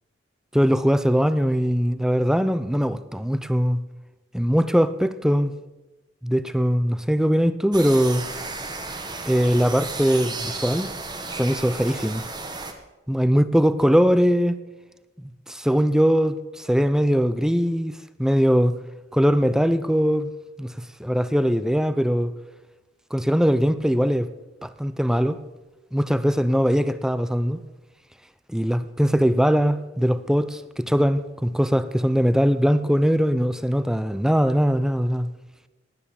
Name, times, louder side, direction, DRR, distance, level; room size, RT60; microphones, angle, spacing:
voice 1, 0.5-3.8 4.3-5.5 6.2-8.2 9.3-10.9 11.3-12.2 13.1-14.6 15.5-17.9 18.2-18.7 19.1-20.3 20.6-20.7 21.0-22.3 23.1-24.3 24.6-25.4 25.9-27.6 28.5-35.3, equal, 5° right, 0.6 m, -21 dB
sound 1, 7.7-12.7, right 3 dB, 20° right, 1.4 m, -33 dB
18.5 x 9.6 x 7.1 m
head